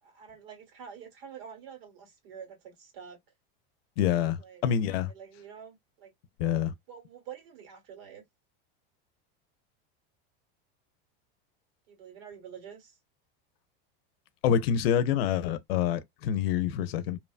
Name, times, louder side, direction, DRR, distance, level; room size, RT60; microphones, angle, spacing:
voice 1, 0.0-3.2 4.4-4.6 5.0-6.1 6.9-8.2 11.9-13.0, right 7 dB, 70° right, 1.8 m, -47 dB
voice 2, 4.0-5.1 6.4-6.7 14.4-17.2, left 9 dB, 85° left, 0.6 m, -27 dB
3.0 x 2.1 x 2.4 m
supercardioid pair, 150°, 29 cm